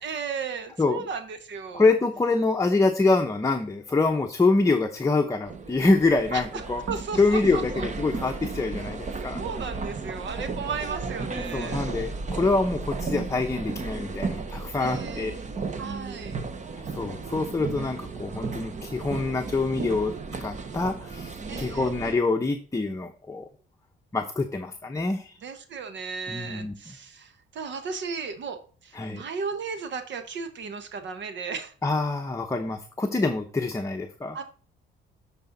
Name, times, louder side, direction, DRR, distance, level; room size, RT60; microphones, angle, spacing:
voice 1, 0.0-1.9 6.3-6.6 6.9-7.9 9.3-11.8 14.8-15.3 15.8-16.4 21.5-21.9 25.4-31.7 34.3-34.4, right 5 dB, 65° right, 9 dB, 1.1 m, -35 dB
voice 2, 1.7-6.8 7.2-9.4 11.5-15.3 16.9-20.1 20.4-23.5 24.1-25.3 26.3-26.7 29.0-29.2 31.8-34.4, left 3 dB, 15° left, 4 dB, 0.7 m, -25 dB
sound 1, 5.5-22.1, right 4 dB, 35° right, 1.0 m, -34 dB
11.5 x 4.2 x 3.9 m, 0.39 s
cardioid pair, 90°, 20 cm